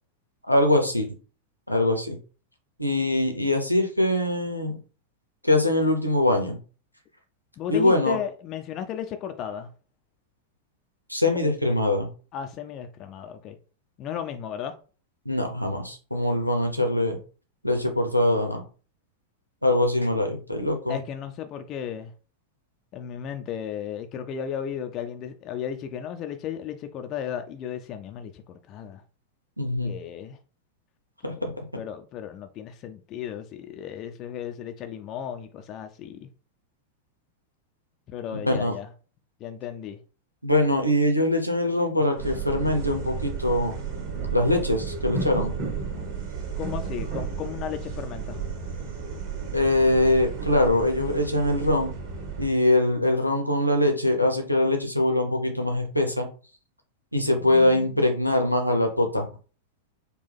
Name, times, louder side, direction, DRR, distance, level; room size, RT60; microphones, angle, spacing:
voice 1, 0.5-1.1 1.7-2.2 2.8-4.8 5.4-6.6 7.7-8.2 11.1-12.1 15.3-17.2 17.6-18.6 19.6-21.0 29.6-29.9 31.2-31.6 38.3-38.7 40.4-43.7 44.3-45.5 49.5-51.9 52.4-56.3 57.1-59.3, left 1 dB, 90° left, 0.8 m, -23 dB
voice 2, 7.6-9.7 11.3-11.5 12.3-13.6 14.0-14.8 20.9-22.1 22.9-29.0 29.8-30.4 31.7-36.3 38.1-38.9 39.4-40.0 46.6-48.4 57.1-58.1, left 9 dB, 35° left, 0.4 m, -35 dB
sound 1, 42.2-52.5, right 5 dB, 40° right, 1.6 m, -33 dB
4.5 x 2.3 x 3.4 m
figure-of-eight pair, 90°, 0 cm